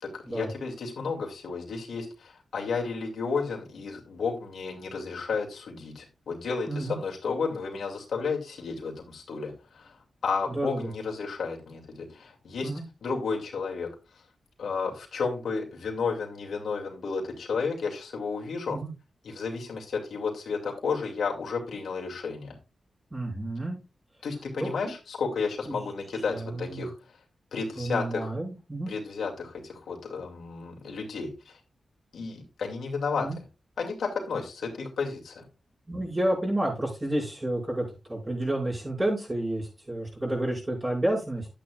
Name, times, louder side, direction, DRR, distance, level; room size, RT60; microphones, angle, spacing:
voice 1, 0.0-10.0 10.2-12.7 13.0-13.9 14.6-18.8 19.2-22.6 24.2-26.9 27.5-28.3 28.9-31.5 32.1-33.3 33.8-35.5, left 4 dB, 85° left, 0 dB, 2.5 m, -32 dB
voice 2, 6.7-7.0 10.5-10.8 12.6-12.8 18.7-18.9 23.1-23.8 24.6-24.7 25.7-25.9 26.3-26.9 27.8-28.9 33.2-33.4 35.9-41.5, right 1 dB, 20° right, -3 dB, 5.7 m, -30 dB
11.5 x 9.0 x 2.4 m, 0.28 s
wide cardioid pair, 110°, 0 cm